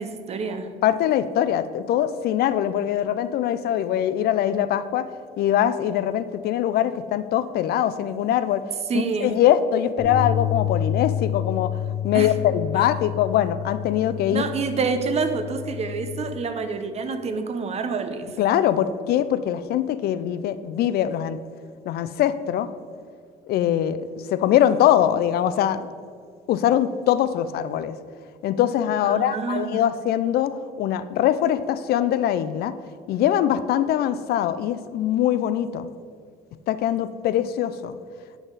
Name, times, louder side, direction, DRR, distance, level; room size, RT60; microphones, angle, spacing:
voice 1, 0.0-0.7 8.9-9.4 12.1-12.3 14.3-18.3 29.1-29.8, right 4 dB, 40° right, 8 dB, 0.8 m, -27 dB
voice 2, 0.8-5.1 5.4-8.7 8.9-11.7 12.0-14.4 18.4-21.4 21.9-22.7 23.5-25.8 26.5-28.0 28.4-32.7 33.1-35.9 36.7-38.0, left 11 dB, 70° left, 13 dB, 0.5 m, -22 dB
sound 1, 10.0-16.2, left 9 dB, 10° left, 1.8 m, -29 dB
9.1 x 6.0 x 4.0 m, 2.1 s
cardioid pair, 110°, 17 cm